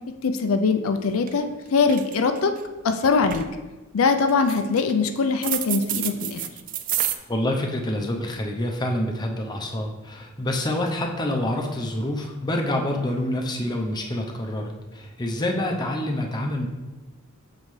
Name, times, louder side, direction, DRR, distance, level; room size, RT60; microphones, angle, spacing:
voice 1, 0.2-2.5 2.8-3.4 3.9-6.4, left 4 dB, 85° left, 7 dB, 0.4 m, -22 dB
sound 1, 0.9-1.0 1.3-1.5 1.8-2.6 3.0-3.5 4.3-4.9 5.4-7.2, right 11 dB, 40° right, 0.3 m, -29 dB
voice 2, 7.3-16.7, left 1 dB, 20° left, 2 dB, 0.6 m, -27 dB
7.3 x 4.2 x 3.2 m, 1.2 s
head